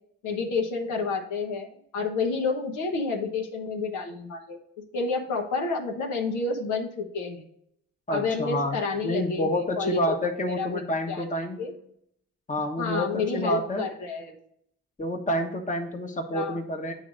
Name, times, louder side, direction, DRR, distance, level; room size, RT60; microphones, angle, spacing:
voice 1, 0.2-1.7 1.9-4.6 4.9-7.4 8.1-10.1 10.5-10.8 11.1-11.3 11.6-11.7 12.8-14.4 16.3-16.6, left 4 dB, 75° left, 1 dB, 1.0 m, -29 dB
voice 2, 8.1-11.6 12.5-13.8 15.0-16.9, equal, 25° left, 5 dB, 1.2 m, -28 dB
8.5 x 3.3 x 5.0 m, 0.71 s
supercardioid pair, 55°, 31 cm